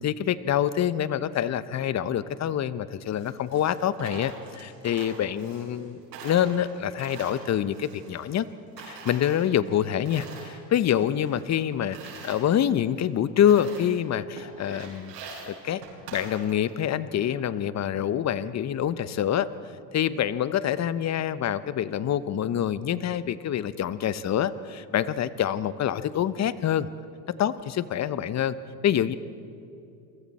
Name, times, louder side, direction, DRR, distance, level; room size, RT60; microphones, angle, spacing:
voice 1, 0.0-8.5 8.8-15.1 15.5-15.8 16.1-19.5 19.9-26.9 27.4-28.6 28.8-29.1, left 10 dB, 35° left, 14 dB, 1.0 m, -26 dB
Coin (dropping), 3.0-5.9 6.1-8.5 8.8-10.6 10.9-12.4 13.0-13.1 13.4-14.0 14.4-16.8, right 4 dB, 80° right, 7.3 m, -44 dB
28.5 x 23.0 x 4.3 m, 2.6 s
hypercardioid pair, 85°, 48 cm